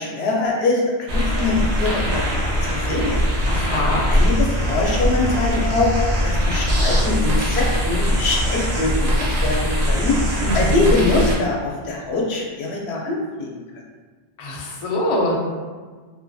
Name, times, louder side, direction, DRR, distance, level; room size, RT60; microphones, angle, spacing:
voice 1, 0.0-2.2 2.6-3.2 4.1-5.9 6.2-13.6, left 3 dB, 85° left, -2 dB, 0.8 m, -23 dB
sound 1, 1.1-11.4, equal, 80° right, 1.0 m, -21 dB
voice 2, 3.5-4.1 10.4-10.8 14.4-15.4, left 1 dB, 50° left, -2 dB, 0.4 m, -23 dB
2.6 x 2.5 x 2.2 m, 1.5 s
omnidirectional pair, 1.1 m